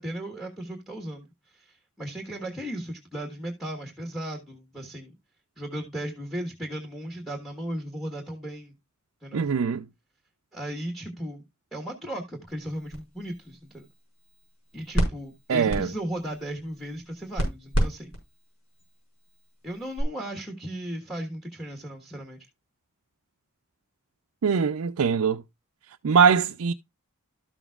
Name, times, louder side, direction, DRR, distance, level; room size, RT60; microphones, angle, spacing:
voice 1, 0.0-5.1 5.6-8.7 9.2-9.5 10.5-11.4 11.7-13.9 14.7-18.1 19.6-22.5, right 1 dB, ahead, 1.3 m, -36 dB
voice 2, 9.3-9.9 15.5-15.9 24.4-25.4 26.0-26.7, right 6 dB, 75° right, 0.4 m, -22 dB
sound 1, 12.5-20.0, right 1 dB, 70° left, 4.7 m, -33 dB
12.5 x 7.1 x 2.4 m
head